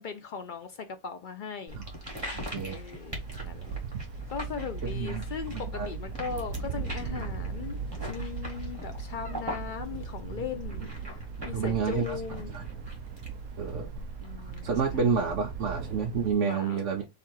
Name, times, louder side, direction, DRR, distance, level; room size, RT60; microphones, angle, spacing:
voice 1, 0.0-1.8 2.6-3.7 4.3-7.8 8.1-12.5 14.2-15.1 16.4-16.8, left 6 dB, 70° left, 0.4 m, -39 dB
sound 1, 1.7-16.3, right 1 dB, 15° right, 1.4 m, -40 dB
voice 2, 2.3-2.8 3.1-3.2 3.9-4.0 4.9-5.2 5.7-5.9 11.5-12.2 12.5-12.6 13.6-13.9 14.6-17.0, right 6 dB, 60° right, 1.0 m, -29 dB
Thunder, 3.2-16.3, right 7 dB, 75° right, 1.1 m, -40 dB
3.4 x 3.4 x 4.5 m
omnidirectional pair, 1.6 m